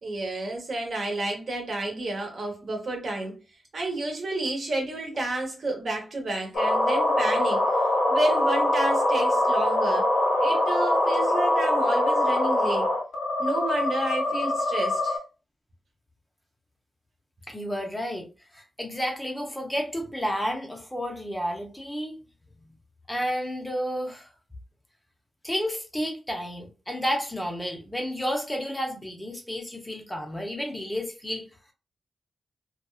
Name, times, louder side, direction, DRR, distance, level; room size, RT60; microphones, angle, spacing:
voice 1, 0.0-3.4 3.7-7.6 8.1-10.1 10.4-12.9 13.4-15.2, right 2 dB, 55° right, 1.0 m, -30 dB
sound 1, 6.5-15.2, left 1 dB, 85° left, 0.8 m, -23 dB
voice 2, 17.5-18.3 18.5-22.2 23.1-24.3 25.4-31.5, equal, 10° left, 0.5 m, -31 dB
2.5 x 2.2 x 2.3 m
wide cardioid pair, 115°, 0 cm